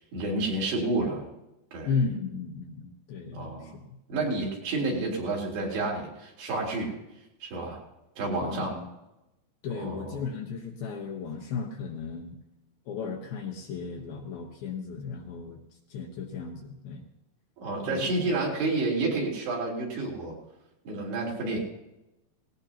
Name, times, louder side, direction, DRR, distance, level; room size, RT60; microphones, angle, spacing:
voice 1, 0.1-1.2 1.7-1.9 3.3-3.8 4.1-6.9 7.4-7.8 8.2-8.8 9.7-10.1 17.6-20.3 20.9-21.6, right 2 dB, 65° right, -3 dB, 5.5 m, -30 dB
voice 2, 1.9-4.4 8.4-8.9 9.6-12.4 12.9-15.6 15.9-17.0 17.9-18.3, left 5 dB, 70° left, 2 dB, 2.6 m, -35 dB
18.5 x 18.0 x 2.9 m, 0.93 s
omnidirectional pair, 5.1 m